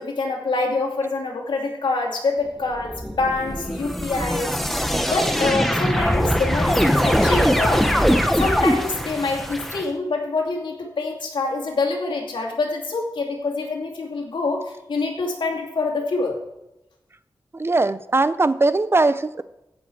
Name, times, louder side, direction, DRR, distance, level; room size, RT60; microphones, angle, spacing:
voice 1, 0.0-4.5 5.0-7.9 8.4-16.4, left 3 dB, 85° left, 0 dB, 2.5 m, -25 dB
sound 1, 2.7-9.8, equal, ahead, 1.1 m, -21 dB
voice 2, 17.5-19.4, right 3 dB, 30° right, 15 dB, 0.5 m, -20 dB
16.0 x 7.1 x 4.6 m, 0.93 s
wide cardioid pair, 105°, 8 cm